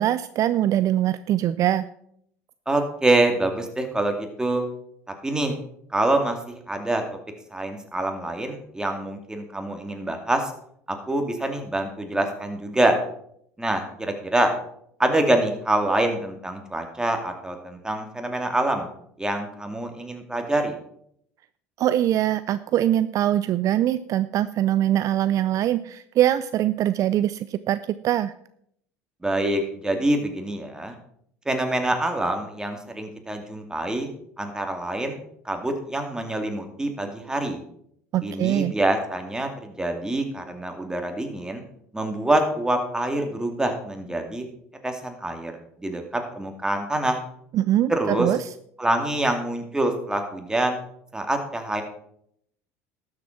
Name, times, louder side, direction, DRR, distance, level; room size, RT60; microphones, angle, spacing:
voice 1, 0.0-1.8 21.8-28.3 38.1-38.7 47.5-48.4, right 12 dB, 50° right, 14 dB, 0.4 m, -22 dB
voice 2, 2.7-4.7 5.2-5.5 5.9-7.0 7.5-10.5 10.9-12.9 13.6-14.5 15.0-18.9 19.2-20.7 29.2-30.9 31.5-34.1 34.4-35.2 35.4-37.6 38.2-41.6 41.9-44.4 44.8-45.5 45.8-47.2 47.9-48.3 48.8-50.8 51.1-51.8, right 1 dB, 10° right, 4 dB, 2.4 m, -25 dB
12.5 x 7.4 x 5.9 m, 0.70 s
hypercardioid pair, 80°, 8 cm